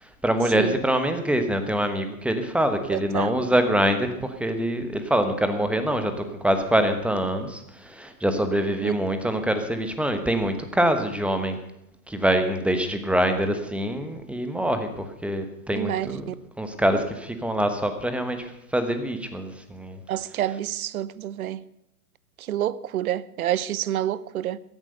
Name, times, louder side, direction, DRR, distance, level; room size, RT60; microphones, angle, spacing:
voice 1, 0.2-11.6 12.1-16.2 16.6-20.0, right 1 dB, 5° right, 1.1 m, -25 dB
voice 2, 2.9-3.3 8.8-8.9 15.7-16.3 20.1-21.7 22.4-24.6, right 12 dB, 65° right, 0.8 m, -28 dB
15.0 x 10.5 x 6.5 m
hypercardioid pair, 130°, 46 cm